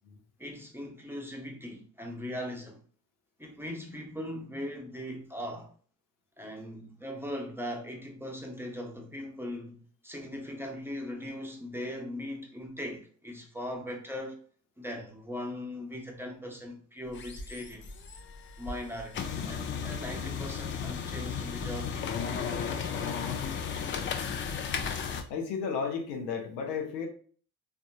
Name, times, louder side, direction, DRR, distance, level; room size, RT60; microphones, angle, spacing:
voice 1, 0.4-2.8 3.4-5.7 6.4-14.4 14.8-17.9 18.6-23.0, left 1 dB, 5° right, 0.7 m, -39 dB
sound 1, 17.1-25.2, left 6 dB, 25° left, 0.4 m, -35 dB
voice 2, 25.3-27.1, left 6 dB, 80° left, 0.7 m, -33 dB
3.5 x 2.3 x 2.7 m
figure-of-eight pair, 40°, 50 cm